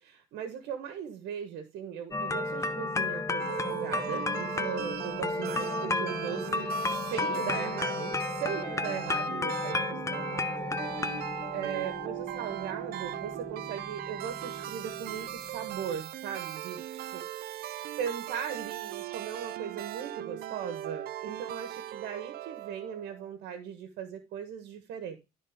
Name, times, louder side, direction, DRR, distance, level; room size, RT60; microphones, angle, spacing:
voice 1, 0.0-6.7 7.1-10.8 11.3-16.8 17.1-17.2 18.0-25.2, right 8 dB, 85° right, 9 dB, 1.5 m, -38 dB
sound 1, 2.1-16.0, left 3 dB, 15° left, 0.8 m, -33 dB
sound 2, 3.4-23.3, right 12 dB, 65° right, 0.6 m, -39 dB
12.0 x 4.1 x 4.9 m, 0.26 s
cardioid pair, 110°, 17 cm